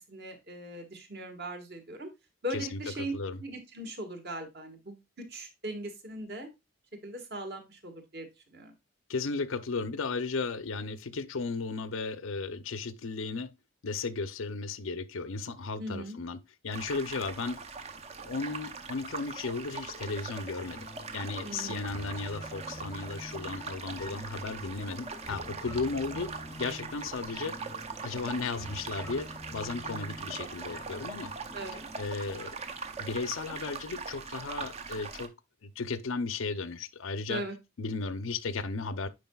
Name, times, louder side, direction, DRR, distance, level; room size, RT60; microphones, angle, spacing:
voice 1, 0.0-2.1 2.4-3.1 3.4-6.5 7.0-8.7 15.8-16.2 21.4-21.8 31.5-31.8 37.3-37.5, right 1 dB, 50° right, 1.6 m, -39 dB
voice 2, 9.1-13.5 13.8-17.6 18.2-20.9 21.1-26.3 26.6-27.6 28.0-31.3 32.0-32.6 33.0-35.3 35.6-37.4 37.8-39.1, left 4 dB, 70° left, 0.6 m, -35 dB
sound 1, 16.7-35.3, right 5 dB, 30° right, 0.6 m, -41 dB
sound 2, 20.6-33.6, left 1 dB, 15° left, 0.3 m, -48 dB
9.3 x 4.9 x 2.3 m
head